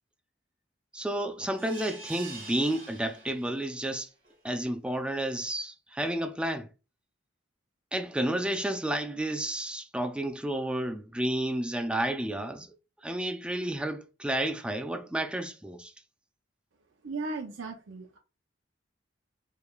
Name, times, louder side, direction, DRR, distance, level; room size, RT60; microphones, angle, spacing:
voice 1, 0.9-4.1 4.4-6.7 7.9-12.7 13.0-15.9, right 1 dB, 5° right, 0.4 m, -31 dB
sound 1, 1.5-3.8 4.2-4.3 4.7-4.8, right 3 dB, 45° right, 1.7 m, -45 dB
voice 2, 17.0-18.2, right 3 dB, 85° right, 0.6 m, -36 dB
4.9 x 3.2 x 2.4 m
head